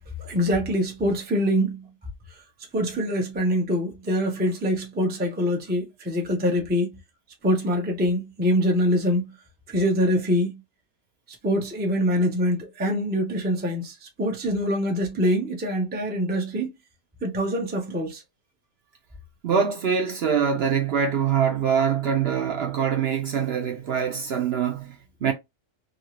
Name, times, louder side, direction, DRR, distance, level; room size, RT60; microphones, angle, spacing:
voice 1, 0.2-1.9 2.7-7.0 7.4-9.3 9.7-10.6 11.3-16.7 17.2-18.2, equal, 10° right, 0.5 m, -24 dB
voice 2, 19.4-25.3, right 7 dB, 60° right, 0.8 m, -24 dB
2.8 x 2.7 x 2.9 m
omnidirectional pair, 1.4 m